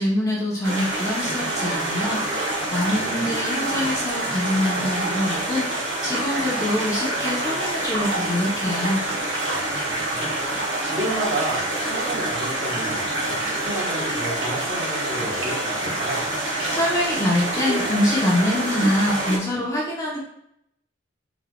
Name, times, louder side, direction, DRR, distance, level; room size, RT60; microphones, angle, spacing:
voice 1, 0.0-9.0 16.7-20.2, left 1 dB, 15° left, -5 dB, 0.8 m, -25 dB
sound 1, 0.6-19.4, right 1 dB, 80° right, 1.3 m, -26 dB
voice 2, 2.9-3.3 9.9-10.5 10.8-16.2, right 1 dB, 30° right, -5 dB, 1.2 m, -32 dB
4.7 x 3.9 x 2.3 m, 0.79 s
head